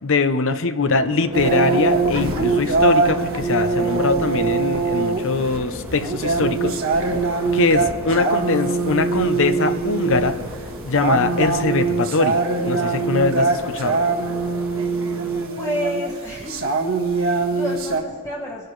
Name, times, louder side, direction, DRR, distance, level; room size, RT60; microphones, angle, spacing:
voice 1, 0.0-6.8 7.5-10.4 10.9-14.0, left 3 dB, 60° left, 10 dB, 0.8 m, -22 dB
sound 1, 0.8-15.5, left 1 dB, 5° right, 1.5 m, -39 dB
sound 2, 1.3-18.0, right 3 dB, 65° right, 1.5 m, -22 dB
voice 2, 15.6-16.7 17.2-18.7, left 1 dB, 15° left, -4 dB, 1.2 m, -30 dB
26.5 x 11.0 x 3.2 m, 2.1 s
head